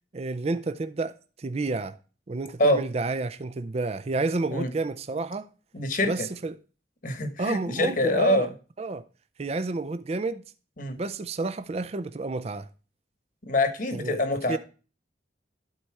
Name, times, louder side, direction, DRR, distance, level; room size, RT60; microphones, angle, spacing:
voice 1, 0.1-2.0 2.3-5.5 6.0-6.6 7.4-8.5 8.8-9.0 9.4-10.4 11.0-12.7 13.9-14.6, right 3 dB, 35° right, 0.4 m, -30 dB
voice 2, 5.7-6.3 7.0-8.5 10.8-11.0 13.4-14.6, left 1 dB, 45° left, 1.2 m, -25 dB
12.0 x 4.2 x 4.7 m
head